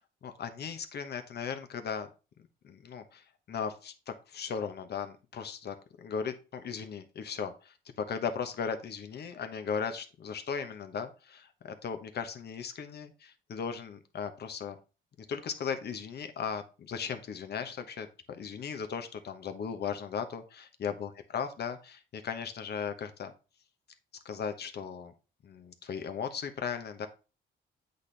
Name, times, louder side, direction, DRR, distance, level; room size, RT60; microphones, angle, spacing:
voice 1, 0.2-2.1 2.6-3.2 3.5-14.8 15.3-23.3 24.2-25.1 25.4-27.1, left 6 dB, 55° left, 8 dB, 1.0 m, -37 dB
8.1 x 4.3 x 3.3 m, 0.32 s
cardioid pair, 90°, 20 cm